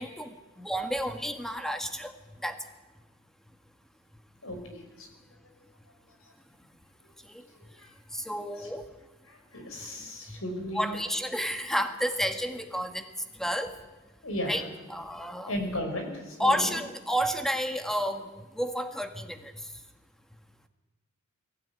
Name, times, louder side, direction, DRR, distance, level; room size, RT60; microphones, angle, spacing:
voice 1, 0.0-2.1 2.4-2.6 7.3-7.4 8.1-8.8 10.3-10.4 10.7-13.0 13.4-13.8 14.5-14.6 14.9-15.5 16.4-19.5, equal, ahead, 7 dB, 1.5 m, -31 dB
voice 2, 4.4-5.1 7.8-7.9 8.6-8.7 9.3-11.0 14.2-14.7 15.5-16.8, left 1 dB, 75° left, 4 dB, 5.7 m, -35 dB
20.5 x 17.0 x 9.6 m, 1.1 s
head